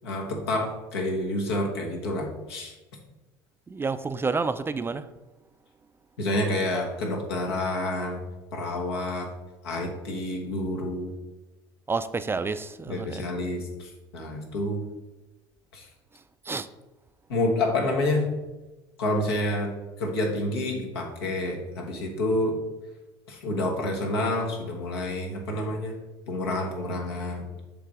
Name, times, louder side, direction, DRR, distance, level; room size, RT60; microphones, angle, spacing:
voice 1, 0.0-2.7 6.2-8.2 8.5-9.3 9.6-11.1 12.9-14.8 15.7-15.9 17.3-18.2 19.0-19.7 20.0-22.6 23.3-25.9 26.3-27.5, left 1 dB, 85° left, 1 dB, 1.3 m, -28 dB
voice 2, 3.7-5.1 11.9-13.2 16.5-16.7, right 4 dB, 20° right, 12 dB, 0.3 m, -29 dB
6.8 x 3.3 x 4.8 m, 1.1 s
hypercardioid pair, 80°, 13 cm